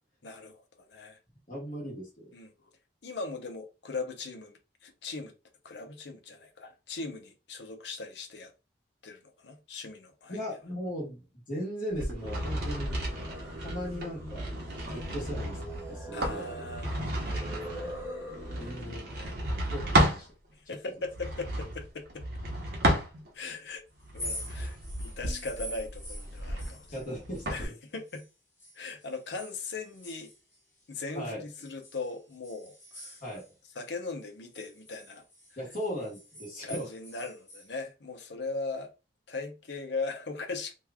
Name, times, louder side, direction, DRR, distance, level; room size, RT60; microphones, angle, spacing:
voice 1, 0.2-1.2 2.3-2.5 3.0-5.3 5.6-8.5 9.0-10.4 14.9-15.1 16.1-17.2 18.6-18.7 19.1-19.3 20.7-22.3 23.3-23.8 24.1-26.9 27.5-28.3 28.7-30.3 30.9-33.2 33.7-35.2 36.6-38.9 39.3-40.7, left 3 dB, 75° left, 0.8 m, -39 dB
voice 2, 1.5-2.3 10.3-12.9 13.6-14.5 14.9-15.6 15.9-16.7 18.5-19.1 19.4-20.3 20.7-20.8 26.9-27.7 31.1-31.4 33.2-33.4 35.6-36.9, equal, 50° left, 1.3 m, -38 dB
sound 1, 11.9-20.3 21.1-23.5 24.0-27.6, right 1 dB, 60° right, 0.9 m, -32 dB
Singing, 12.2-18.9, equal, 15° right, 1.0 m, -43 dB
sound 2, 24.0-28.3 28.6-31.1 31.6-33.9 34.2-37.7, left 1 dB, 15° left, 1.1 m, -46 dB
3.0 x 2.4 x 3.5 m
head